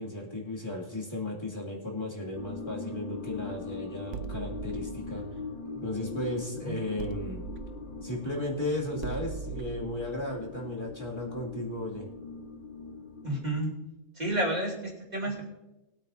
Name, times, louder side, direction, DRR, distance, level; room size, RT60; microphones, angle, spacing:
voice 1, 0.0-5.2 5.7-7.4 8.0-12.1, left 1 dB, 20° left, -3 dB, 2.4 m, -35 dB
sound 1, 2.3-13.6, left 4 dB, 40° left, 1.2 m, -41 dB
sound 2, 4.1-6.5 7.0-11.6, right 7 dB, 70° right, 1.0 m, -42 dB
voice 2, 13.2-13.7 14.1-15.5, right 1 dB, 30° right, -3 dB, 2.9 m, -30 dB
21.5 x 8.9 x 2.7 m, 1.0 s
omnidirectional pair, 1.4 m